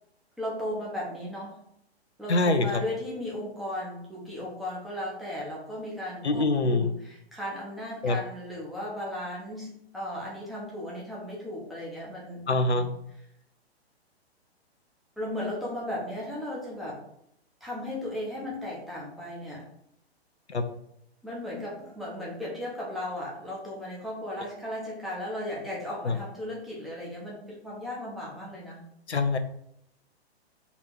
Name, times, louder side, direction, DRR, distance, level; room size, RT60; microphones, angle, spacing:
voice 1, 0.4-1.6 2.2-12.9 13.1-13.2 15.2-17.0 17.6-19.6 21.2-28.8, left 1 dB, ahead, -5 dB, 0.9 m, -36 dB
voice 2, 2.3-2.7 6.2-6.9 8.0-8.2 12.5-12.9 20.5-20.6 26.1-26.2 29.1-29.4, left 2 dB, 85° left, 8 dB, 0.6 m, -24 dB
4.0 x 2.9 x 4.5 m, 0.74 s
figure-of-eight pair, 120°, 33 cm